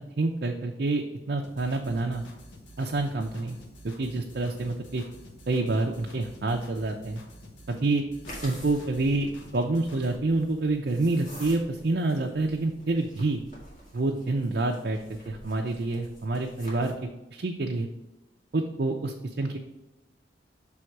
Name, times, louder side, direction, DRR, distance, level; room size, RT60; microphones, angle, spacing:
voice 1, 0.0-2.2 2.8-3.6 3.8-5.0 5.5-7.2 7.7-8.0 8.4-13.4 13.9-16.9 17.3-17.9 18.5-19.6, right 2 dB, 55° right, 1 dB, 0.5 m, -28 dB
sound 1, 1.4-10.2, left 1 dB, 75° left, 1.0 m, -49 dB
sound 2, 8.2-17.1, equal, 40° left, 1.9 m, -48 dB
6.4 x 3.5 x 4.6 m, 1.0 s
head